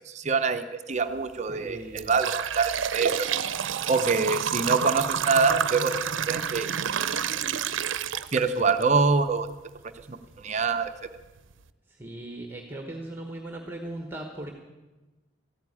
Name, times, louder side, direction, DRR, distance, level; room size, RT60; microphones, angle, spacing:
voice 1, 0.1-3.3 3.9-6.8 8.3-9.5 10.1-11.1, right 4 dB, 35° right, 8 dB, 0.6 m, -25 dB
sound 1, 1.0-1.2 1.7-8.8 9.3-9.4 10.2-10.3 10.9-11.0 11.4-11.6, right 8 dB, 75° right, 0.6 m, -29 dB
voice 2, 1.5-2.3 3.9-4.4 11.9-14.5, right 1 dB, 10° right, 3 dB, 1.1 m, -39 dB
14.5 x 9.4 x 9.7 m, 1.1 s
head